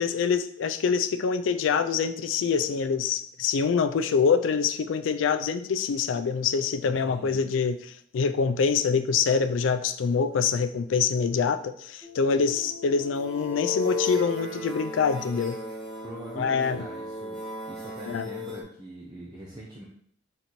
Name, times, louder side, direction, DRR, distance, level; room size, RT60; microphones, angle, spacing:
voice 1, 0.0-7.8 8.1-15.6 16.4-16.9 18.1-18.3, left 5 dB, 85° left, 11 dB, 0.4 m, -25 dB
voice 2, 6.8-7.5 16.0-19.8, right 1 dB, 20° right, -4 dB, 0.6 m, -42 dB
sound 1, 12.0-18.6, left 4 dB, ahead, 1.3 m, -35 dB
4.1 x 3.9 x 3.0 m, 0.64 s
head